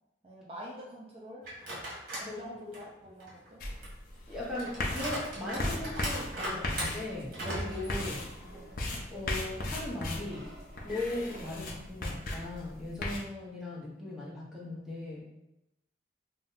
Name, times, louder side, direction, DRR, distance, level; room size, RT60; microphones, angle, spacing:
voice 1, 0.2-1.4 2.1-3.6, equal, 30° right, -4 dB, 0.4 m, -46 dB
sound 1, 1.4-2.3 2.7-8.8 9.2-9.3 10.3-11.8, right 1 dB, 50° right, 1.1 m, -40 dB
voice 2, 2.3-2.8 4.3-8.3 9.1-10.5 10.8-15.2, left 2 dB, ahead, -6 dB, 0.7 m, -38 dB
sound 2, 3.6-13.2, left 2 dB, 50° left, 0.5 m, -37 dB
2.6 x 2.1 x 3.8 m, 0.87 s
head